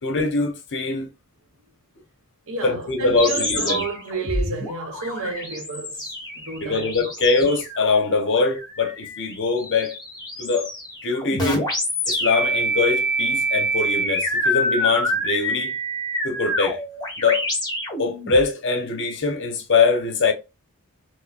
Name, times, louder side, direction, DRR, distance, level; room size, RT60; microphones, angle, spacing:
voice 1, 0.0-1.1 2.6-3.8 6.6-9.9 10.4-10.7 11.0-11.7 12.1-15.7 16.2-16.8 17.2-17.5 18.0-20.3, left 4 dB, 55° left, 0.8 m, -22 dB
voice 2, 2.5-6.0 6.4-6.9, right 4 dB, 65° right, 0.8 m, -30 dB
sound 1, 3.2-18.5, equal, 20° left, 1.4 m, -27 dB
4.9 x 2.0 x 2.4 m
head